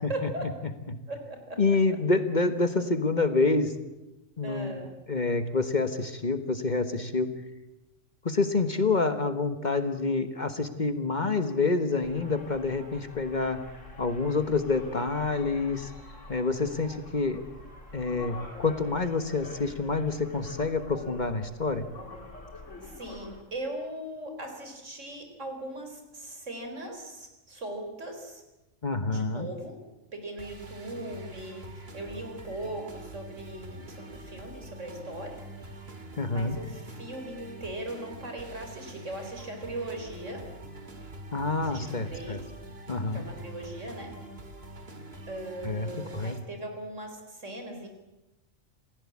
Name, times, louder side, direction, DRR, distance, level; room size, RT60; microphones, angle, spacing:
voice 1, 0.1-0.5 1.1-1.6 4.4-4.9 22.8-28.4 29.1-29.8 30.1-31.6 31.9-35.3 36.3-40.4 41.6-42.4 43.1-44.1 45.3-47.9, right 1 dB, 75° right, 4 dB, 4.5 m, -39 dB
voice 2, 1.6-3.7 4.4-4.8 5.1-7.3 8.2-13.6 14.0-15.9 16.3-17.4 17.9-21.9 28.8-29.5 36.2-36.6 41.3-42.4 42.9-43.2 45.6-46.4, left 3 dB, 40° left, 9 dB, 1.5 m, -27 dB
sound 1, 12.0-23.4, left 2 dB, 75° left, 3.8 m, -46 dB
sound 2, 30.4-46.4, right 1 dB, 50° right, 2.4 m, -45 dB
27.5 x 16.0 x 8.6 m, 0.99 s
omnidirectional pair, 1.3 m